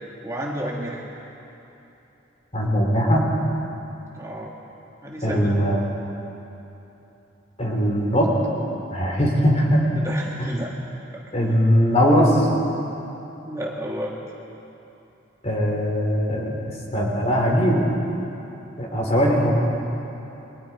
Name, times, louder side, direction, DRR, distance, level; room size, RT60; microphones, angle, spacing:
voice 1, 0.2-1.0 4.2-4.5 5.0-5.6 10.0-10.7 11.1-11.2 11.5-11.6 13.5-14.1, equal, 15° right, -3 dB, 1.8 m, -31 dB
voice 2, 2.5-3.3 5.2-5.8 7.6-8.3 8.9-9.8 10.4-10.5 11.3-12.5 15.4-16.5 16.9-17.9 18.8-19.5, equal, 35° left, -1 dB, 4.0 m, -20 dB
29.5 x 22.5 x 4.6 m, 3.0 s
head